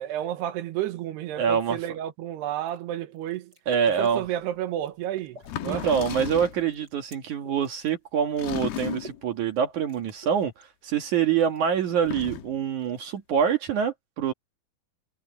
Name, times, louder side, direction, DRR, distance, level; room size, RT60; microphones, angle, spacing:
voice 1, 0.0-3.5 4.0-5.9, right 12 dB, 90° right, 3.3 m, -31 dB
voice 2, 1.4-1.8 3.7-4.2 5.7-10.5 10.8-14.3, right 8 dB, 55° right, 2.8 m, -25 dB
sound 1, 2.6-2.8 3.2-4.1 4.6-5.7 6.0-7.9 8.3-8.4 8.6-9.3 9.6-9.7 9.9-11.0 11.4-11.9 12.8-13.3, right 1 dB, 25° right, 6.7 m, -50 dB
sound 2, 4.3-4.4 5.4-6.7 8.4-9.3 11.9-12.6, left 11 dB, 80° left, 3.0 m, -34 dB
omnidirectional pair, 4.6 m